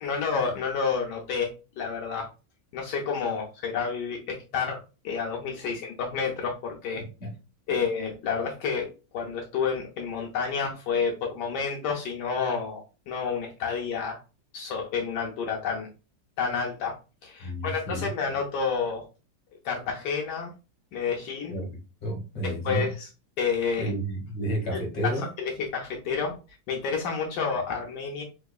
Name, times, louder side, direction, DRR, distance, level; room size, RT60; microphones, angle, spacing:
voice 1, 0.0-2.3 2.7-4.8 5.0-7.0 7.7-14.2 14.5-15.9 16.4-16.9 17.2-19.0 19.6-20.5 20.9-21.6 22.4-23.1 23.4-23.9 24.7-25.1 25.4-26.4 26.7-28.2, left 5 dB, 75° left, 0 dB, 1.3 m, -30 dB
voice 2, 7.0-7.3 17.4-18.1 21.5-22.9 23.8-25.3, equal, 45° left, 1 dB, 1.4 m, -31 dB
3.7 x 3.0 x 2.3 m, 0.32 s
omnidirectional pair, 1.9 m